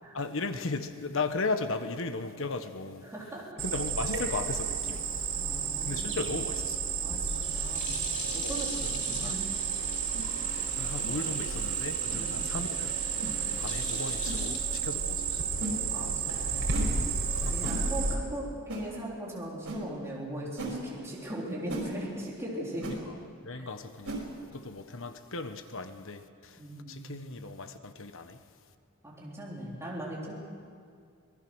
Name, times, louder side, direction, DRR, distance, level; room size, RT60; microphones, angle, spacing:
voice 1, 0.1-3.0 3.6-5.1 5.8-6.8 8.2-9.4 10.8-13.3 13.6-15.4 17.2-17.8 22.8-23.0 23.4-26.6 26.8-28.4, left 3 dB, 65° left, 1.3 m, -36 dB
voice 2, 3.0-3.4 5.4-6.3 7.0-8.0 8.3-9.5 12.1-12.5 15.9-17.0 17.5-22.9 23.5-23.7 26.6-27.2 29.0-30.3, right 1 dB, 15° right, 4.0 m, -39 dB
Cricket, 3.6-18.1, right 6 dB, 70° right, 4.5 m, -32 dB
sound 1, 7.0-15.4, left 4 dB, 35° left, 2.8 m, -43 dB
sound 2, 9.0-9.2 10.1-10.3 11.0-11.2 12.1-12.2 13.2-13.4 14.2-14.4 15.6-15.8 16.7-16.9 17.6-17.8 18.7-18.9 19.6-19.8 20.6-20.8 21.7-21.9 22.8-23.0 24.0-24.2, right 1 dB, 90° right, 5.3 m, -36 dB
25.5 x 19.5 x 6.4 m
head